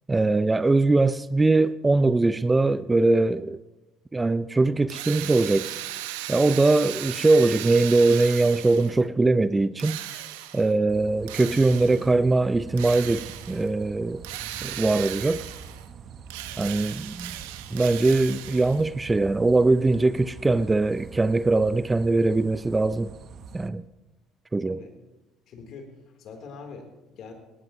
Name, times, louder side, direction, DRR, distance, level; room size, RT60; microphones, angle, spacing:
voice 1, 0.1-3.6 4.1-5.8 6.3-10.0 10.5-14.2 14.6-15.4 16.6-17.4 17.7-23.1 23.5-23.8 24.5-24.8, right 2 dB, 20° right, 0.5 m, -21 dB
Drill, 4.9-9.0 9.8-10.7 11.3-12.1 12.8-13.7 14.2-15.9 16.3-18.9, right 13 dB, 80° right, 0.9 m, -37 dB
sound 1, 10.9-23.7, right 6 dB, 55° right, 1.0 m, -44 dB
voice 2, 25.5-25.9 26.2-27.3, left 5 dB, 60° left, 3.6 m, -43 dB
18.5 x 18.0 x 3.1 m
hypercardioid pair, 65°, 0 cm